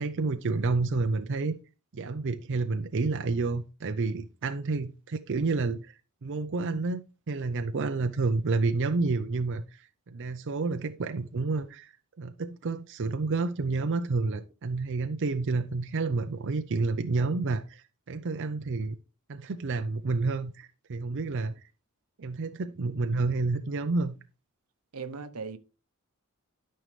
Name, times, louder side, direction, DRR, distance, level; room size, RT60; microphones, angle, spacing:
voice 1, 0.0-1.6 1.9-5.9 6.2-7.0 7.3-19.0 19.3-21.5 22.2-24.2, right 3 dB, 55° right, 0.5 m, -29 dB
voice 2, 24.9-25.6, right 5 dB, 85° right, 0.8 m, -38 dB
12.0 x 5.4 x 3.2 m
head